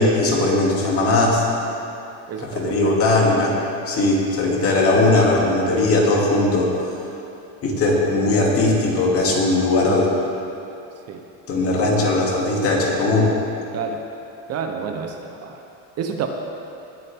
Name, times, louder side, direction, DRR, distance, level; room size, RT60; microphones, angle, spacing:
voice 1, 0.0-1.5 2.4-3.6 3.9-6.7 7.6-10.1 11.5-13.3, left 2 dB, 40° left, -3 dB, 2.6 m, -19 dB
voice 2, 2.3-2.7 11.1-11.2 13.7-14.0 14.5-15.6 16.0-16.3, right 6 dB, 40° right, 4 dB, 0.9 m, -28 dB
20.0 x 9.0 x 3.6 m, 2.8 s
cardioid pair, 135°, 37 cm